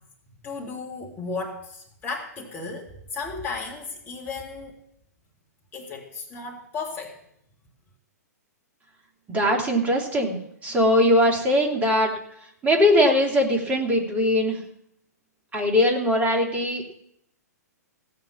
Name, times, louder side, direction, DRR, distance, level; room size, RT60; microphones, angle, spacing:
voice 1, 0.4-4.7 5.7-7.1, left 4 dB, 20° left, -2 dB, 2.1 m, -34 dB
voice 2, 9.3-12.1 12.6-14.6 15.5-16.9, left 1 dB, 15° right, 1 dB, 2.9 m, -21 dB
16.0 x 6.6 x 7.2 m, 0.73 s
figure-of-eight pair, 115°, 9 cm